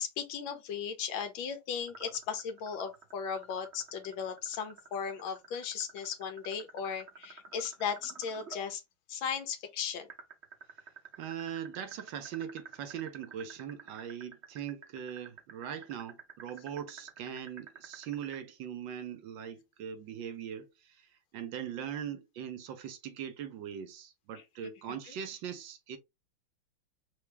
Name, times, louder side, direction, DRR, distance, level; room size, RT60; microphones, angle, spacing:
voice 1, 0.0-8.8 9.1-10.1 25.1-25.2, left 7 dB, 75° left, 1.7 m, -36 dB
sound 1, 1.9-8.6 10.1-18.4, right 5 dB, 45° right, 1.0 m, -49 dB
voice 2, 11.2-26.0, right 8 dB, 70° right, 1.5 m, -41 dB
4.8 x 2.8 x 3.4 m
omnidirectional pair, 2.2 m